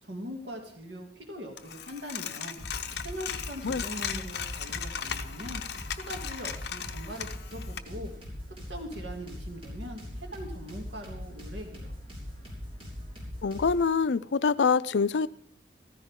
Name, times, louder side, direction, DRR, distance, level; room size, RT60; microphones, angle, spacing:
voice 1, 0.0-2.6 3.0-5.6 5.9-8.1 8.7-11.9, equal, 80° right, 1 dB, 2.6 m, -41 dB
Coin (dropping), 1.6-7.8, left 8 dB, 65° left, 0.8 m, -37 dB
sound 1, 2.6-13.9, left 1 dB, 35° right, 5.8 m, -41 dB
voice 2, 13.4-15.3, left 5 dB, 90° left, 16 dB, 0.5 m, -25 dB
15.0 x 14.0 x 3.7 m, 0.62 s
head